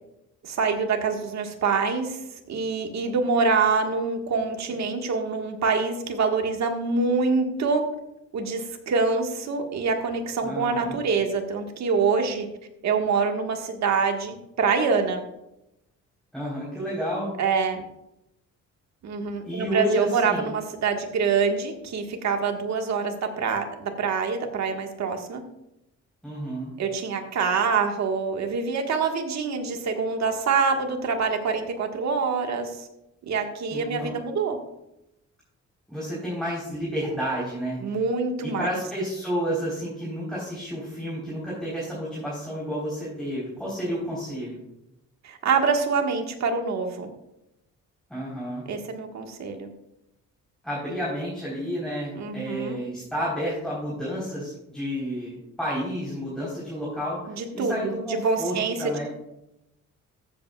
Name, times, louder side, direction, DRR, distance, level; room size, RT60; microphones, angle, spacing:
voice 1, 0.4-2.2 2.5-7.8 8.3-12.5 12.8-15.2 17.4-17.8 19.0-25.4 26.8-32.9 33.3-34.6 37.8-38.8 45.2-47.1 48.7-49.7 52.1-52.8 57.4-57.9 58.2-59.1, right 5 dB, 65° right, 4 dB, 1.6 m, -25 dB
voice 2, 10.4-11.0 16.3-17.3 19.4-20.5 26.2-26.7 33.7-34.1 35.9-38.0 38.4-44.6 48.1-48.6 50.6-59.1, equal, ahead, -6 dB, 3.9 m, -31 dB
14.5 x 8.2 x 2.4 m, 0.86 s
cardioid pair, 90°, 30 cm